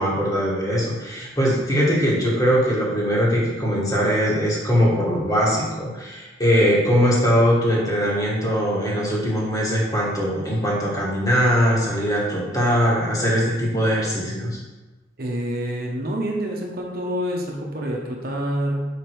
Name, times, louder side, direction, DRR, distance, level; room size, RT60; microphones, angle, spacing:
voice 1, 0.0-14.6, equal, 20° left, -5 dB, 1.7 m, -21 dB
voice 2, 15.2-18.9, equal, 55° right, 0 dB, 0.9 m, -27 dB
5.1 x 5.0 x 4.6 m, 1.1 s
head